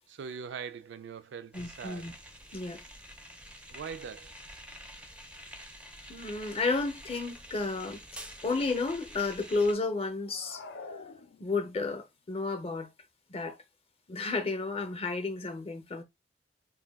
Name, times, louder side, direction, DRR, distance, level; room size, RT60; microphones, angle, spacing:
voice 1, 0.1-2.1 3.7-4.3, right 6 dB, 85° right, 0.3 m, -42 dB
voice 2, 1.5-2.1 2.5-2.8 6.1-8.0 8.4-10.6 11.4-12.9 13.3-13.6 14.1-16.0, left 3 dB, 35° left, 0.6 m, -32 dB
sound 1, 1.5-9.8, equal, 5° right, 0.4 m, -48 dB
sound 2, 10.2-11.9, left 3 dB, 80° left, 0.5 m, -46 dB
2.2 x 2.2 x 3.4 m
head